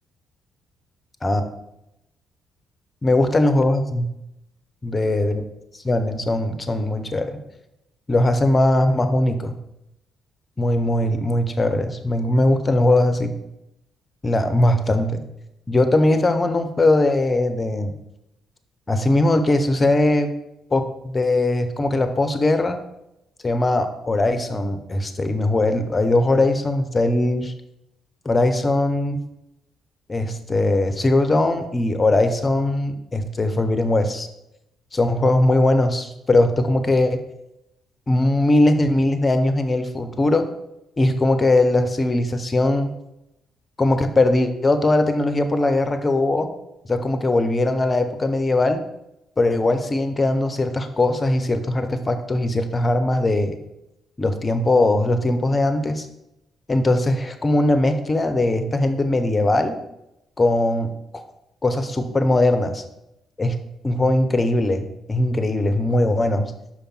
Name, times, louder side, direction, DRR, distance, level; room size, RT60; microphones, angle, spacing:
voice 1, 3.0-4.0 4.8-5.4 5.8-7.4 8.1-9.5 10.6-13.3 14.2-15.2 15.7-17.9 18.9-20.3 20.7-22.8 23.4-27.5 28.2-29.2 30.1-34.3 34.9-37.2 38.1-40.5 41.0-42.9 43.8-46.5 46.9-48.8 49.4-53.6 54.2-56.1 56.7-59.8 60.4-61.2 61.6-62.8 63.4-63.6 63.8-66.5, left 2 dB, 30° left, 8 dB, 0.7 m, -20 dB
5.2 x 4.4 x 4.4 m, 0.85 s
hypercardioid pair, 45°, 0 cm